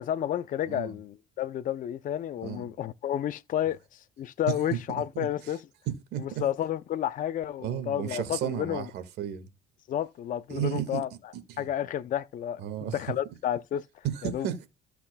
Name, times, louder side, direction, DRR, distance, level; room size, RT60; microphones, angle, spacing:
voice 1, 0.0-5.6 6.4-8.8 9.9-11.1 11.6-12.6 12.9-13.8 14.3-14.5, left 11 dB, 50° left, 0.6 m, -31 dB
voice 2, 0.7-1.0 2.4-2.7 4.5-4.8 5.2-5.5 5.9-6.4 7.6-9.5 10.5-11.0 11.3-11.7 12.6-13.0 14.0-14.6, right 11 dB, 80° right, 1.8 m, -33 dB
15.5 x 5.7 x 2.2 m
cardioid pair, 110°, 17 cm